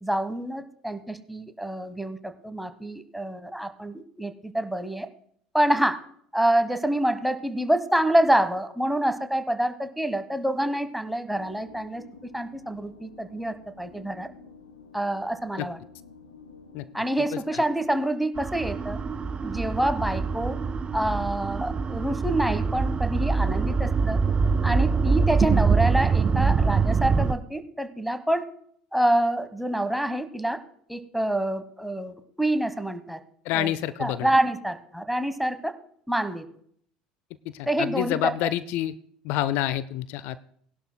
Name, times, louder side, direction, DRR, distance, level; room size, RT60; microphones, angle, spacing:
voice 1, 0.0-5.1 5.5-6.0 6.3-12.0 12.3-14.3 14.9-15.8 16.9-19.0 19.4-20.6 20.9-24.2 24.6-28.4 28.9-30.6 30.9-33.2 33.5-33.7 34.0-35.7 36.1-36.4 37.7-38.2, right 1 dB, ahead, 9 dB, 1.1 m, -27 dB
sound 1, 11.3-18.0, left 4 dB, 85° left, 1.2 m, -50 dB
sound 2, 18.4-27.3, right 5 dB, 30° right, 0.5 m, -24 dB
voice 2, 33.5-34.3 37.5-38.9 39.2-40.5, left 13 dB, 60° left, 15 dB, 0.4 m, -28 dB
19.0 x 11.5 x 2.2 m, 0.63 s
hypercardioid pair, 70°, 4 cm